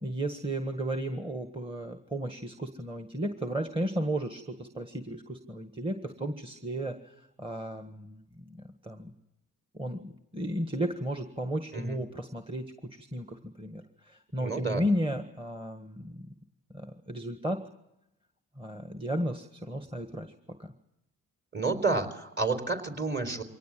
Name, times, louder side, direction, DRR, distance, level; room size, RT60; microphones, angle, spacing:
voice 1, 0.0-9.1 9.7-16.3 16.7-17.6 18.6-20.3 20.6-20.7, right 1 dB, 15° right, 6 dB, 1.6 m, -34 dB
voice 2, 14.4-14.9 21.5-23.4, right 3 dB, 30° right, 6 dB, 3.9 m, -30 dB
24.0 x 18.5 x 7.7 m, 0.85 s
cardioid pair, 75°, 34 cm